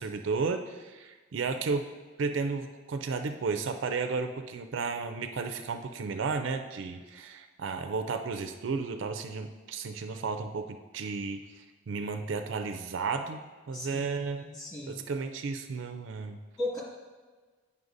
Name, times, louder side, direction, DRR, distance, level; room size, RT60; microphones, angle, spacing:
voice 1, 0.0-1.9 2.2-14.4 14.9-16.4, right 4 dB, 65° right, 7 dB, 0.4 m, -33 dB
voice 2, 13.7-14.0 14.4-15.0 16.6-16.8, left 1 dB, 20° left, -7 dB, 2.1 m, -36 dB
9.4 x 5.4 x 2.6 m, 1.3 s
head